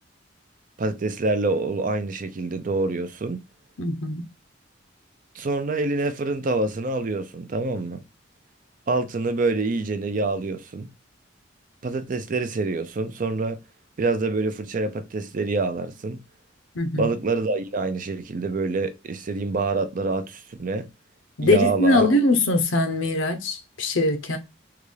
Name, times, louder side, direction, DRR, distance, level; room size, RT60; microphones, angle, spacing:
voice 1, 0.8-3.4 5.3-8.0 8.9-10.9 11.8-13.6 14.0-16.2 16.9-20.9 21.4-22.1, right 3 dB, 45° right, 0.5 m, -26 dB
voice 2, 3.8-4.2 16.7-17.1 21.4-24.4, left 2 dB, 85° left, 0.7 m, -22 dB
3.8 x 2.3 x 3.2 m
head